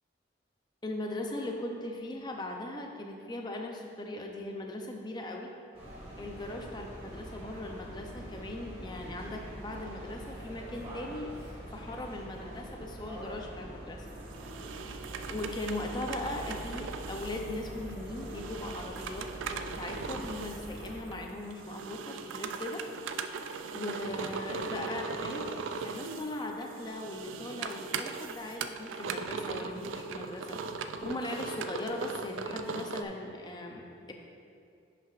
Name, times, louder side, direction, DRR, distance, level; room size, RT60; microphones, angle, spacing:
voice 1, 0.8-5.5 6.2-11.3 11.7-14.1 15.3-22.8 23.7-30.6 31.0-34.1, left 1 dB, 20° left, 2 dB, 0.5 m, -39 dB
sound 1, 5.7-21.0, equal, 30° right, 1.6 m, -44 dB
sound 2, 14.1-33.0, right 5 dB, 80° right, 0.3 m, -39 dB
10.5 x 5.8 x 2.4 m, 2.5 s
head